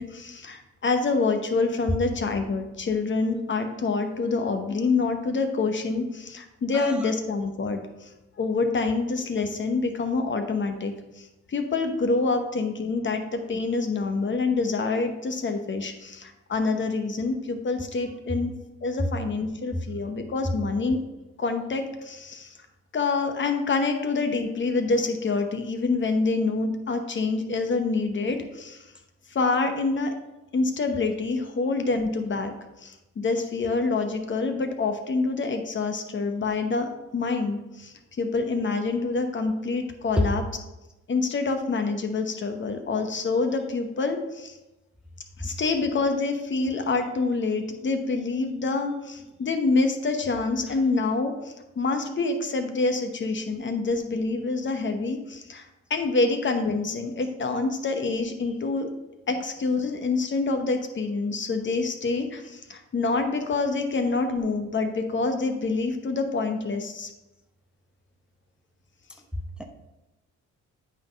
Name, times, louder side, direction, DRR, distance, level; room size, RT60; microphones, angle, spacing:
voice 1, 0.0-8.1 8.4-21.0 21.4-22.6 22.9-28.9 29.3-30.1 30.5-32.5 32.8-40.4 41.1-44.6 45.4-55.6 55.9-58.9 59.3-67.1, left 3 dB, 40° left, 6 dB, 1.0 m, -26 dB
voice 2, 6.7-7.1 19.0-19.1 19.7-19.8 20.4-20.6 40.2-40.3 45.4-45.5 49.3-49.4 50.7-50.8 59.3-59.4, left 1 dB, 5° right, 3 dB, 0.7 m, -28 dB
8.6 x 3.8 x 5.2 m, 0.98 s
cardioid pair, 90°, 30 cm